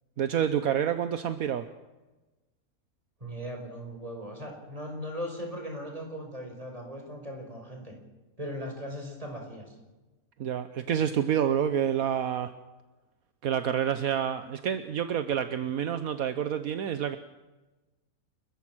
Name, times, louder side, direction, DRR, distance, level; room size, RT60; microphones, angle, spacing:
voice 1, 0.2-1.7 10.4-12.5 13.4-17.2, right 9 dB, 75° right, 10 dB, 1.3 m, -28 dB
voice 2, 3.2-7.9 8.4-9.7, equal, 25° right, 2 dB, 5.5 m, -38 dB
29.5 x 14.5 x 6.2 m, 1.1 s
omnidirectional pair, 1.5 m